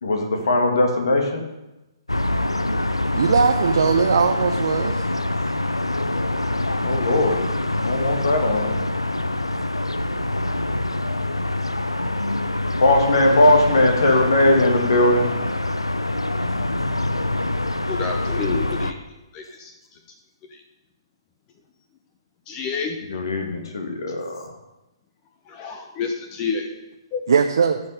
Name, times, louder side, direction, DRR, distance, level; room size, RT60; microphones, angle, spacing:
voice 1, 0.0-1.4 6.8-7.4 7.8-8.7 12.7-15.3 23.1-24.5, left 1 dB, 60° left, 3 dB, 2.1 m, -19 dB
sound 1, 2.1-18.9, left 1 dB, 85° left, 0.6 m, -25 dB
voice 2, 3.1-5.0 27.3-27.8, right 6 dB, 60° right, 6 dB, 0.6 m, -19 dB
voice 3, 17.9-20.0 20.4-20.6 22.5-23.0 25.4-26.8 27.1-27.2, left 5 dB, 25° left, 4 dB, 0.9 m, -30 dB
14.5 x 5.7 x 5.1 m, 0.99 s
figure-of-eight pair, 125°, 3 cm